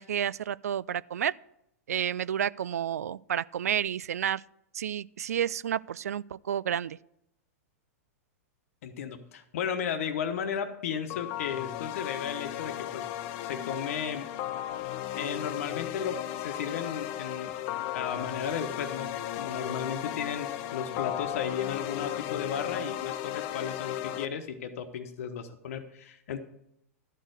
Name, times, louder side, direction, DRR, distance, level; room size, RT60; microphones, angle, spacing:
voice 1, 0.0-1.3 1.9-4.4 4.7-7.0, right 9 dB, 85° right, 0.3 m, -30 dB
voice 2, 8.8-13.1 13.4-14.3 15.1-17.6 17.9-26.4, left 7 dB, 70° left, 1.1 m, -34 dB
sound 1, 11.1-24.3, left 12 dB, 45° left, 0.7 m, -35 dB
13.0 x 4.4 x 8.1 m
hypercardioid pair, 120°, 8 cm